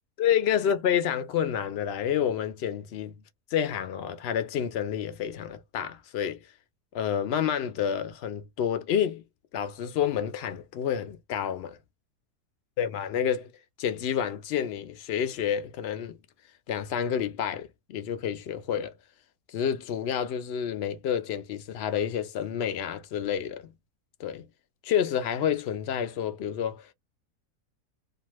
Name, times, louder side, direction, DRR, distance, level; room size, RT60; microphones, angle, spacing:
voice 1, 0.2-3.1 3.5-6.4 6.9-9.2 9.5-11.8 12.8-13.5 13.8-16.2 16.7-18.9 19.5-23.7 24.2-24.5 24.8-26.9, left 9 dB, 75° left, 0.5 m, -29 dB
2.7 x 2.3 x 2.9 m
omnidirectional pair, 1.7 m